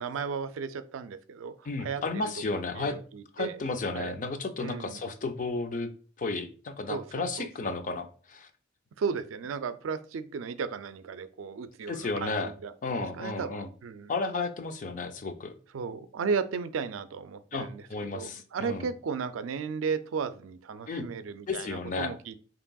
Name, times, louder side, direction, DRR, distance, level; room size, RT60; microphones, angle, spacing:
voice 1, 0.0-2.0 2.5-3.6 3.9-4.1 4.6-5.0 6.9-7.8 9.0-14.1 15.7-17.9 18.1-22.4, right 5 dB, 85° right, 11 dB, 0.4 m, -35 dB
voice 2, 1.6-3.0 3.3-5.9 6.2-8.5 11.9-12.5 12.8-13.7 14.1-15.5 17.5-18.9 20.9-21.1 21.5-22.1, left 3 dB, 40° left, 8 dB, 0.4 m, -33 dB
5.1 x 2.9 x 2.3 m, 0.40 s
head